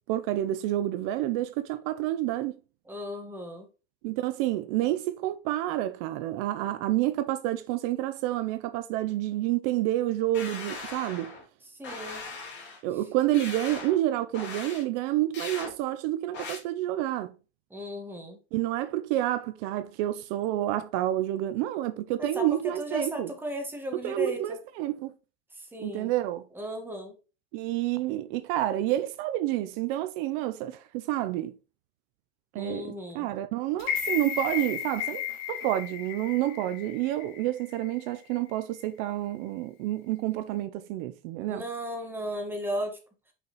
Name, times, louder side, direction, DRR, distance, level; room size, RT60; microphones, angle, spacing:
voice 1, 0.1-2.6 4.0-11.3 12.8-17.3 18.5-23.3 23.9-25.1 25.8-26.5 27.5-31.5 32.5-41.6, right 14 dB, 70° right, 0.6 m, -29 dB
voice 2, 2.9-3.7 11.7-12.3 17.7-18.4 22.2-24.6 25.5-26.1 26.5-27.2 32.5-33.3 41.5-43.0, equal, 5° right, 1.5 m, -35 dB
sound 1, 10.3-11.4 11.8-12.8 13.3-14.0 14.3-14.8 15.3-15.7 16.3-16.6, left 4 dB, 35° left, 2.5 m, -39 dB
sound 2, 33.8-37.9 38.3-38.4, left 9 dB, 90° left, 1.5 m, -34 dB
5.8 x 4.1 x 4.0 m
cardioid pair, 140°, 30 cm